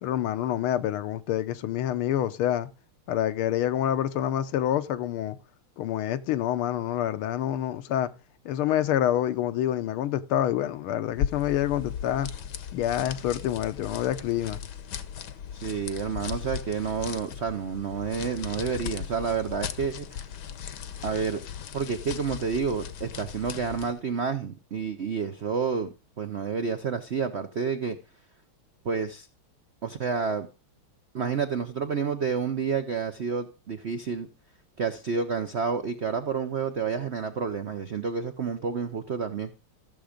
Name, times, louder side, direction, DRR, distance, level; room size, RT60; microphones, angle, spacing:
voice 1, 0.0-2.7 3.1-5.4 5.8-8.1 8.4-12.3 12.7-14.6, left 11 dB, 80° left, 1.7 m, -27 dB
sound 1, 11.1-24.0, left 8 dB, 60° left, 1.3 m, -37 dB
voice 2, 15.5-20.2 21.0-21.4 21.7-28.0 28.8-29.3 29.8-30.5 31.1-34.3 34.8-39.5, right 6 dB, 70° right, 0.6 m, -29 dB
14.5 x 7.1 x 5.1 m
omnidirectional pair, 2.3 m